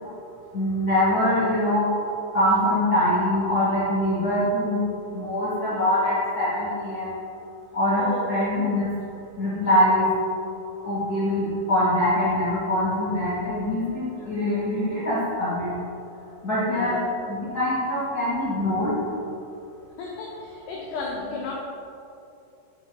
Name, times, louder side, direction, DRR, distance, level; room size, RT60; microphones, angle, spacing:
voice 1, 0.5-1.9 2.3-4.8 5.1-7.1 7.7-8.9 9.4-10.1 10.8-15.7 16.4-18.9, left 1 dB, 70° left, -12 dB, 0.9 m, -23 dB
voice 2, 16.6-17.0 20.0-21.5, left 4 dB, 85° left, -2 dB, 2.1 m, -34 dB
6.8 x 6.0 x 4.6 m, 2.8 s
omnidirectional pair, 5.1 m